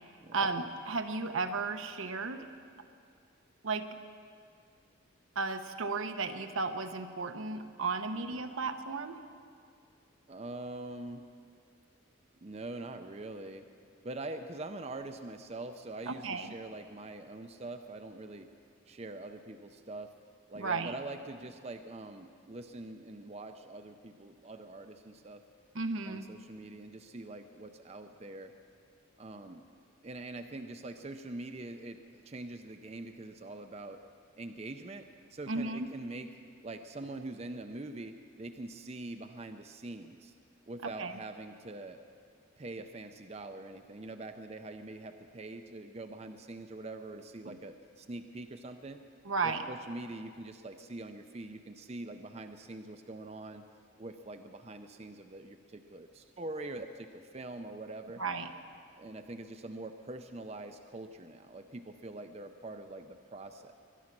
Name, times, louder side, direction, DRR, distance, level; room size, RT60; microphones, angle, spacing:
voice 1, 0.3-2.5 3.6-3.9 5.3-9.2 16.1-16.5 20.5-21.0 25.7-26.3 35.5-35.9 41.0-41.2 47.4-47.6 49.2-49.6 58.2-58.5, right 4 dB, 80° right, 7 dB, 0.9 m, -34 dB
voice 2, 8.1-8.4 10.3-11.3 12.4-13.7 14.0-18.5 18.9-20.1 20.5-25.4 26.1-28.5 29.2-29.6 30.0-34.0 34.4-35.1 35.3-36.3 36.6-40.3 40.7-42.0 42.6-49.0 49.4-53.6 54.0-58.2 59.0-63.7, right 2 dB, 30° right, 7 dB, 0.5 m, -44 dB
22.5 x 10.5 x 6.0 m, 2.3 s
head